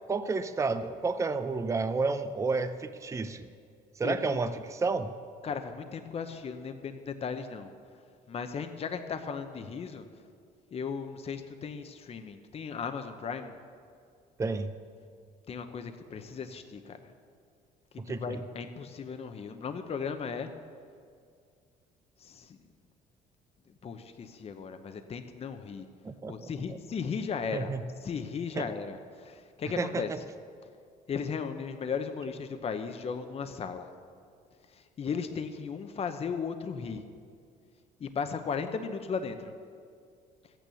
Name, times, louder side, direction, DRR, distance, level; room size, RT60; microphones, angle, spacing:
voice 1, 0.1-3.5 4.0-5.1 14.4-14.7 18.0-18.2 26.0-26.5 27.5-27.8 28.6-28.7 29.8-30.2, right 4 dB, 15° right, 9 dB, 0.6 m, -31 dB
voice 2, 4.0-4.4 5.4-7.7 8.3-10.0 10.7-13.5 15.5-17.1 18.1-20.5 22.2-22.6 23.8-25.9 26.3-27.7 28.0-30.1 31.1-33.9 34.7-37.1 38.0-39.5, left 6 dB, 35° left, 8 dB, 0.8 m, -36 dB
13.5 x 9.2 x 7.0 m, 2.2 s
cardioid pair, 110°, 17 cm